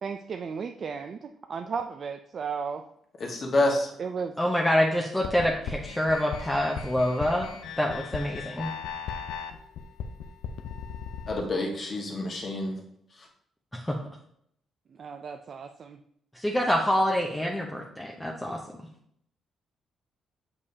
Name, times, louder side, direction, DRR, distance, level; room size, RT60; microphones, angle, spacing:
voice 1, 0.0-2.8 4.0-4.3 15.0-16.0, right 6 dB, 50° right, 6 dB, 0.4 m, -34 dB
voice 2, 3.2-3.9 11.3-12.7, left 2 dB, 45° left, 1 dB, 1.5 m, -27 dB
voice 3, 4.4-8.7 13.7-14.0 16.4-18.6, equal, 10° left, -1 dB, 0.8 m, -26 dB
sound 1, 5.2-11.4, left 7 dB, 75° left, 0.6 m, -37 dB
6.7 x 5.3 x 2.8 m, 0.71 s
cardioid pair, 90°, 0 cm